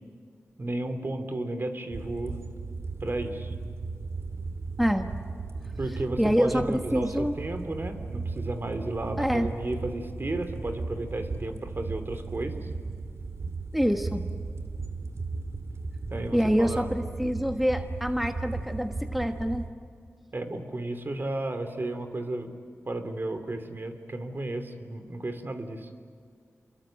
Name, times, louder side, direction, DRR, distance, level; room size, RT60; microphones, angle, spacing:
voice 1, 0.6-2.3 3.0-3.5 5.8-12.7 16.1-16.9 20.3-22.5 22.9-25.9, right 2 dB, 45° right, 7 dB, 3.1 m, -33 dB
sound 1, 1.9-19.7, right 3 dB, 75° right, 2.7 m, -36 dB
voice 2, 4.8-5.1 6.2-7.4 9.2-9.5 13.7-14.2 16.3-19.7, equal, ahead, 6 dB, 1.4 m, -26 dB
28.5 x 22.5 x 9.1 m, 2.1 s
cardioid pair, 55°, 5 cm